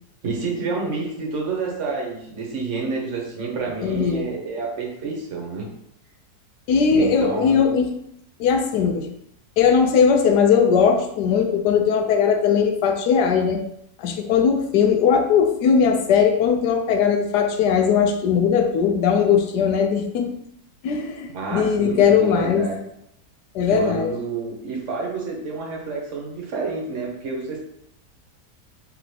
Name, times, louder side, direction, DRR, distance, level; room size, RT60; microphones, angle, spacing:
voice 1, 0.2-5.7 6.9-7.6 21.3-22.8 23.6-27.6, right 4 dB, 50° right, -1 dB, 1.3 m, -29 dB
voice 2, 3.8-4.2 6.7-7.9 8.4-9.1 9.6-13.6 14.0-20.3 20.8-22.7 23.5-24.1, left 6 dB, 85° left, 4 dB, 1.2 m, -19 dB
3.7 x 3.5 x 3.2 m, 0.73 s
omnidirectional pair, 1.7 m